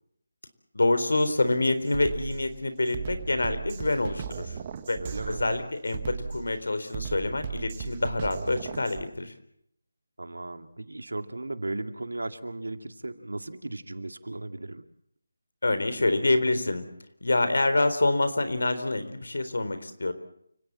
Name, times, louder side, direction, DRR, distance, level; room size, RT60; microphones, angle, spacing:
voice 1, 0.7-4.5 4.9-5.0 5.3-9.3 15.6-16.9 17.2-20.1, left 2 dB, 75° left, 10 dB, 4.0 m, -26 dB
Drum kit, 1.2-1.4 1.9-9.1, right 6 dB, 25° right, 1.4 m, -37 dB
voice 2, 5.0-5.4 10.2-14.8, right 2 dB, 85° right, 8 dB, 2.3 m, -36 dB
29.0 x 17.5 x 7.6 m, 0.73 s
figure-of-eight pair, 165°, 0 cm